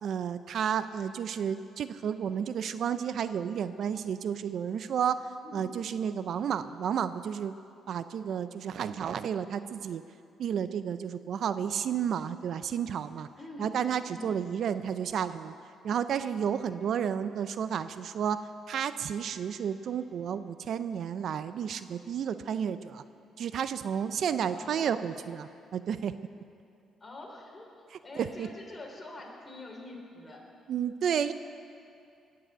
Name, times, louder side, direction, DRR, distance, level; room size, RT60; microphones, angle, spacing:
voice 1, 0.0-5.3 5.5-7.6 7.9-10.0 10.4-13.3 13.6-15.5 15.8-18.4 18.7-23.0 23.4-26.1 28.2-28.5 30.7-31.3, right 8 dB, 65° right, 12 dB, 0.5 m, -31 dB
voice 2, 5.4-5.7 13.4-13.7 14.1-14.3 24.5-24.9 27.0-27.7 28.0-30.4, left 2 dB, 25° left, -1 dB, 3.6 m, -45 dB
19.0 x 7.7 x 8.0 m, 2.5 s
cardioid pair, 90°, 0 cm